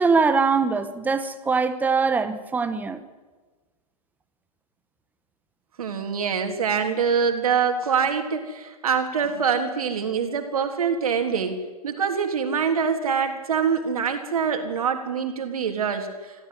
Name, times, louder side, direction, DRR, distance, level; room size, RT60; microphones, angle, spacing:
voice 1, 0.0-3.0, right 4 dB, 10° right, 9 dB, 1.5 m, -22 dB
voice 2, 5.8-16.5, right 6 dB, 65° right, 4 dB, 3.7 m, -25 dB
25.0 x 14.5 x 9.4 m, 1.3 s
figure-of-eight pair, 125°, 20 cm